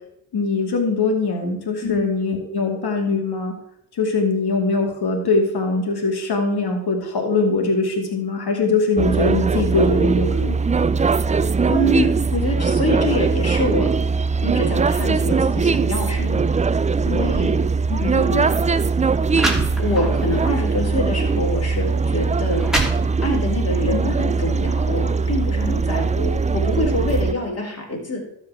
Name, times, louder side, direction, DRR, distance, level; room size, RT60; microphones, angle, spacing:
voice 1, 0.3-3.5 4.0-10.6 17.9-18.0 23.9-24.0, left 3 dB, 55° left, 3 dB, 2.7 m, -22 dB
sound 1, 9.0-27.3, right 4 dB, 15° right, 0.4 m, -20 dB
voice 2, 11.7-13.9 14.4-16.4 17.1-17.5 18.0-18.5 19.8-22.6 23.2-28.2, left 1 dB, 30° left, -1 dB, 4.0 m, -25 dB
sound 2, 18.1-18.3 19.0-19.1 19.3-20.3 20.8-21.0 21.8-21.9 22.4-23.5, right 1 dB, ahead, 2.9 m, -25 dB
12.5 x 4.9 x 6.1 m, 0.78 s
hypercardioid pair, 45°, 47 cm